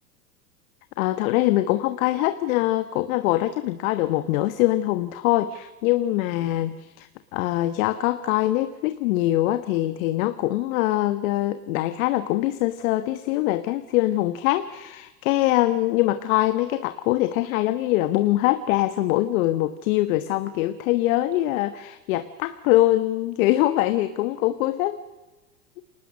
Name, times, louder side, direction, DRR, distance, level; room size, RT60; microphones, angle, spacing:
voice 1, 1.0-25.0, left 15 dB, 55° left, 11 dB, 1.4 m, -23 dB
29.0 x 26.5 x 6.6 m, 1.1 s
hypercardioid pair, 90°, 50 cm